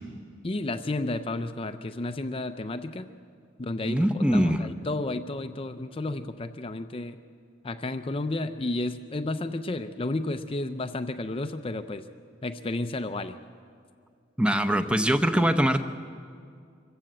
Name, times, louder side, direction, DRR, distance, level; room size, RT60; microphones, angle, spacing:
voice 1, 0.4-3.1 3.6-7.2 7.6-12.1 12.4-13.4, left 2 dB, 30° left, 8 dB, 0.5 m, -32 dB
voice 2, 3.8-4.6 14.4-15.8, equal, 5° right, 6 dB, 0.7 m, -22 dB
25.0 x 15.0 x 8.0 m, 2.3 s
head